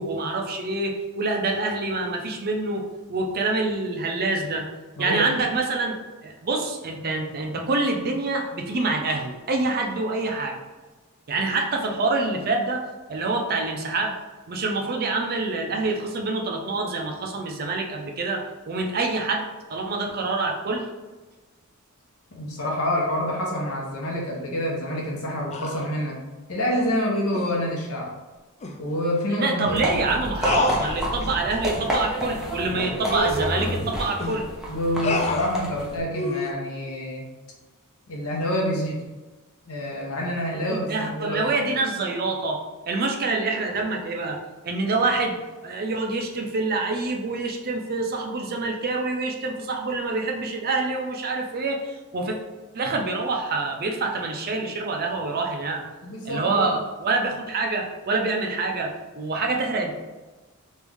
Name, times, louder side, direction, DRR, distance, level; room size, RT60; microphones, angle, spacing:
voice 1, 0.0-4.7 5.0-5.9 6.2-10.6 11.3-14.1 14.5-20.8 29.3-34.5 40.5-44.4 44.6-52.4 52.7-55.8 56.2-59.9, right 3 dB, 45° right, 2 dB, 0.5 m, -26 dB
voice 2, 5.0-5.3 22.3-26.2 26.5-28.1 28.8-30.0 32.6-33.0 34.6-37.3 38.1-39.0 39.7-41.6 56.0-56.7, equal, 80° left, -2 dB, 1.0 m, -27 dB
sound 1, 25.5-25.8 26.7-27.0 27.3-27.6 28.6-28.8 29.1-29.3 29.6-29.8 30.4-31.4 31.7-31.9 32.4-32.5 32.9-34.4 35.0-35.5 36.1-36.5, left 2 dB, 30° left, 0.3 m, -29 dB
sound 2, 29.7-36.0, equal, ahead, 0.6 m, -30 dB
3.1 x 2.6 x 3.5 m, 1.2 s
head